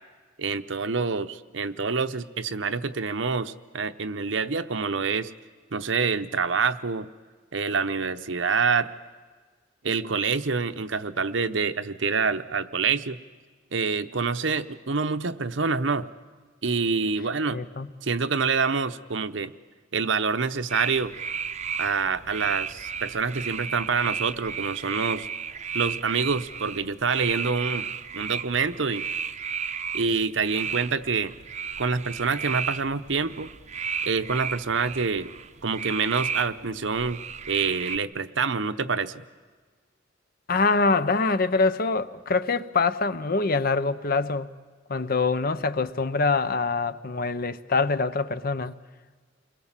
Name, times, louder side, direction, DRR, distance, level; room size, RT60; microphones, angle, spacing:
voice 1, 0.4-5.3 5.7-7.1 7.5-8.9 9.8-13.2 13.7-16.1 16.6-17.6 18.0-19.5 19.9-21.1 21.8-25.3 25.7-27.9 28.1-29.0 29.9-31.3 31.8-33.5 34.0-35.3 35.6-39.1, right 5 dB, 80° right, 0.9 m, -26 dB
voice 2, 17.5-17.9 40.5-44.5 44.9-48.7, left 4 dB, 50° left, 0.9 m, -24 dB
sound 1, 20.7-38.0, right 6 dB, 40° right, 0.7 m, -34 dB
29.0 x 22.0 x 7.5 m
head